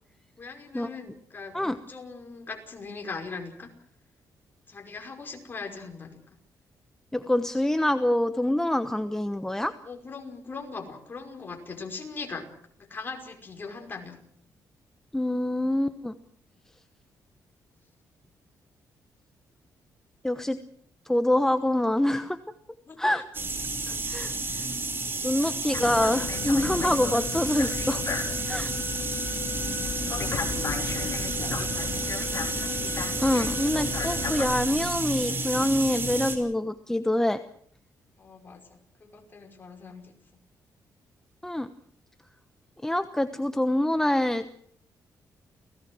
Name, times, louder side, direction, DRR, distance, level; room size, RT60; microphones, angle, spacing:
voice 1, 0.4-1.5 1.9-3.7 4.7-6.4 9.8-12.5 12.9-14.2 22.9-23.3 23.9-24.8 25.3-25.9 29.5-29.7 30.0-32.1 38.2-40.1, left 4 dB, 30° left, 3 dB, 5.4 m, -41 dB
voice 2, 7.1-9.7 15.1-16.1 20.2-20.6 21.1-22.4 23.0-23.2 24.1-24.3 25.2-28.0 28.5-28.7 33.2-37.4 41.4-41.7 42.8-44.6, left 1 dB, 5° left, 9 dB, 1.1 m, -25 dB
sound 1, 23.3-36.4, right 3 dB, 30° right, 5.2 m, -31 dB
sound 2, 25.7-34.5, left 6 dB, 50° left, 4.7 m, -34 dB
29.5 x 17.5 x 6.2 m, 0.62 s
cardioid pair, 120°, 7 cm